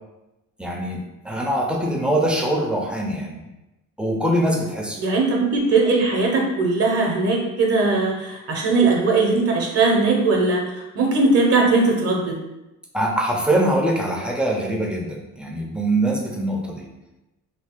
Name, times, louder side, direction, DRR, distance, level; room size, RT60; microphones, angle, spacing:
voice 1, 0.6-3.4 4.0-5.0 12.9-16.9, right 1 dB, 5° right, -1 dB, 0.6 m, -23 dB
voice 2, 5.0-10.6 10.9-12.4, right 3 dB, 50° right, -1 dB, 0.8 m, -19 dB
2.8 x 2.7 x 3.6 m, 0.97 s
cardioid pair, 90°, 30 cm